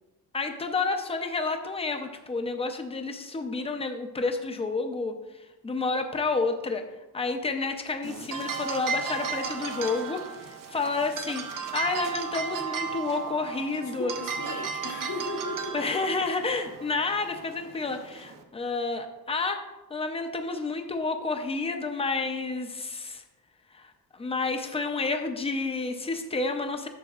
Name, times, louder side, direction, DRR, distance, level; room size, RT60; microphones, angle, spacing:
voice 1, 0.3-5.1 5.6-6.8 7.1-14.1 15.7-19.6 19.9-23.2 23.7-26.9, left 3 dB, 15° left, 6 dB, 0.5 m, -30 dB
sound 1, 8.0-18.4, right 6 dB, 55° right, 0.7 m, -35 dB
voice 2, 13.7-15.8, left 3 dB, 65° left, -2 dB, 1.2 m, -36 dB
12.0 x 6.9 x 2.4 m, 1.1 s
wide cardioid pair, 180°, 39 cm